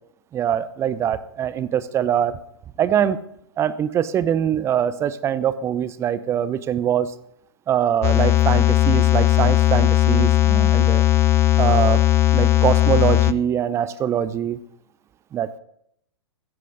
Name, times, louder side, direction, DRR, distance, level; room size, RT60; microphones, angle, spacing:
voice 1, 0.3-2.4 2.8-3.2 3.6-7.1 7.7-11.0 11.6-12.0 12.3-14.6 15.3-15.5, right 9 dB, 20° right, 16 dB, 0.7 m, -23 dB
sound 1, 8.0-13.3, left 14 dB, 20° left, 0.5 m, -17 dB
15.5 x 15.0 x 4.0 m, 0.73 s
figure-of-eight pair, 110°, 14 cm